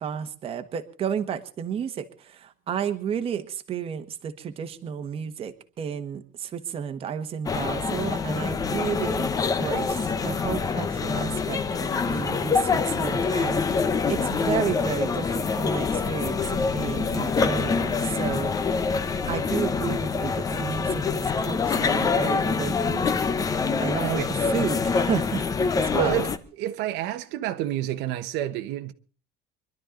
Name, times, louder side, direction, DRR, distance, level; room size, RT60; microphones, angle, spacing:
voice 1, 0.0-9.3 9.6-18.8 19.3-23.2 23.8-25.4 25.7-26.2, right 8 dB, 30° right, 1.3 m, -32 dB
sound 1, 7.5-26.4, left 5 dB, 20° left, 0.9 m, -25 dB
voice 2, 25.9-26.3 26.6-28.9, right 12 dB, 65° right, 1.1 m, -28 dB
24.5 x 12.0 x 3.8 m
cardioid pair, 180°, 19 cm